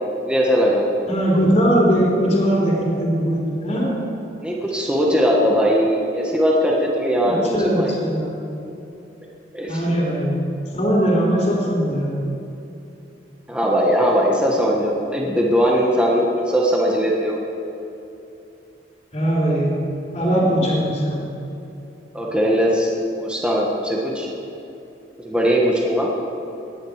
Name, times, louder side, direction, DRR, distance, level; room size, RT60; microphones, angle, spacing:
voice 1, 0.2-0.8 4.4-7.9 9.5-9.8 13.5-17.4 22.1-22.9 23.2-24.3 25.2-26.1, equal, 5° right, -3 dB, 1.5 m, -19 dB
voice 2, 1.1-3.9 7.2-8.3 9.7-10.4 10.7-12.2 19.1-19.7 20.1-21.2, equal, 40° left, -5 dB, 3.4 m, -20 dB
19.0 x 10.5 x 5.0 m, 2.8 s
head